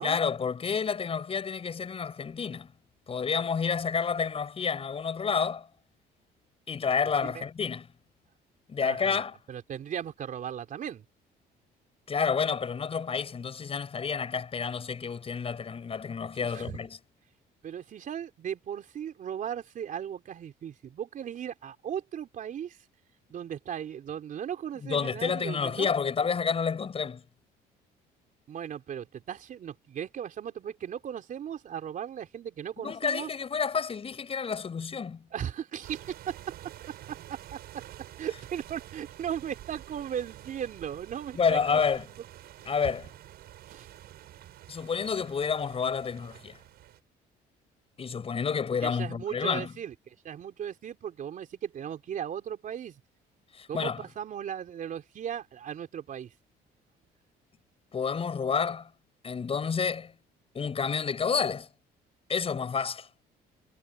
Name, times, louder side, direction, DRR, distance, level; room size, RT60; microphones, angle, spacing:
voice 1, 0.0-2.7 3.1-5.7 6.7-7.9 8.7-9.4 12.1-17.0 24.8-27.2 32.8-35.2 41.4-42.0 42.7-43.1 44.7-46.6 48.0-49.7 53.5-54.0 57.9-58.9 59.2-60.1 60.5-61.7 62.3-63.1, left 6 dB, 35° left, 7.0 m, -29 dB
voice 2, 8.8-9.2 9.5-11.0 16.3-16.8 17.6-22.8 23.3-25.9 28.5-33.3 35.3-36.4 37.1-37.6 38.2-41.8 43.7-43.9 48.8-53.0 53.7-56.3, right 9 dB, 50° right, 4.0 m, -37 dB
sound 1, 35.8-47.0, right 13 dB, 70° right, 7.7 m, -48 dB
cardioid pair, 110°, 17 cm